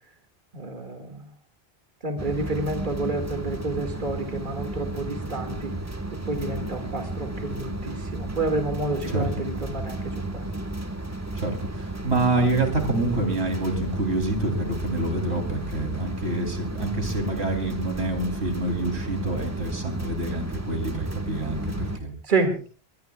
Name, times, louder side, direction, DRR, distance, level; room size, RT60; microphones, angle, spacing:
voice 1, 0.5-1.3 2.0-5.7 6.3-10.0 10.3-10.5 22.3-22.5, right 2 dB, 50° right, 5 dB, 2.3 m, -29 dB
sound 1, 2.2-22.0, right 2 dB, 15° right, 1.4 m, -33 dB
voice 2, 11.3-22.1, right 2 dB, 85° right, 4 dB, 3.6 m, -27 dB
22.0 x 21.5 x 2.3 m, 0.38 s
omnidirectional pair, 1.1 m